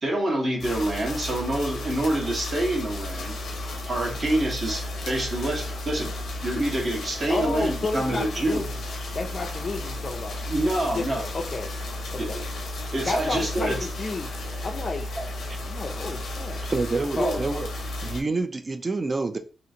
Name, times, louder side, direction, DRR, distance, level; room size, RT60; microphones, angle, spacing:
voice 1, 0.0-3.4 3.9-6.1 6.4-8.6 10.5-11.2 12.2-12.4 12.9-13.8 15.2-15.3 17.2-17.4, right 1 dB, 50° right, 1.1 m, -26 dB
sound 1, 0.6-18.2, left 1 dB, 80° left, 0.6 m, -33 dB
voice 2, 7.3-8.7 9.1-10.4 10.9-11.7 12.1-12.4 13.0-15.1 15.7-16.6 16.9-17.4, left 3 dB, 40° left, 0.4 m, -31 dB
voice 3, 16.6-17.7 18.0-19.4, right 3 dB, 30° right, 0.3 m, -27 dB
2.8 x 2.4 x 2.6 m
cardioid pair, 100°, 0 cm